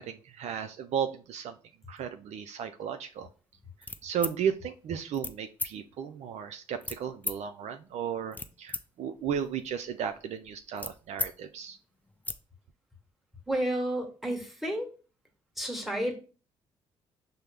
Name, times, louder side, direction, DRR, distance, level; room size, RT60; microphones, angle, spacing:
voice 1, 0.0-1.6 1.9-3.3 4.0-11.8, right 8 dB, 65° right, 8 dB, 0.4 m, -34 dB
sound 1, 3.8-4.4 5.1-5.3 5.6-5.7 6.8-7.4 8.1-8.8 9.2-11.3 11.7-11.8 12.1-12.4, left 2 dB, 15° left, 0.4 m, -36 dB
voice 2, 13.5-14.9 15.6-16.1, right 1 dB, ahead, 2 dB, 1.3 m, -31 dB
5.5 x 2.0 x 3.3 m, 0.37 s
supercardioid pair, 55°, 12 cm